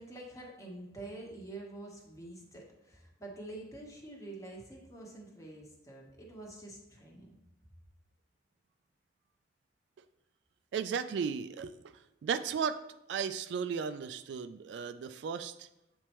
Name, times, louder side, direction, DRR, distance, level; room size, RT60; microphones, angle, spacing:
voice 1, 0.0-7.3, right 2 dB, 20° left, -2 dB, 1.1 m, -47 dB
voice 2, 10.7-11.9 12.2-12.8 13.1-15.7, right 6 dB, 70° right, 10 dB, 0.3 m, -35 dB
7.5 x 4.4 x 3.0 m, 0.89 s
head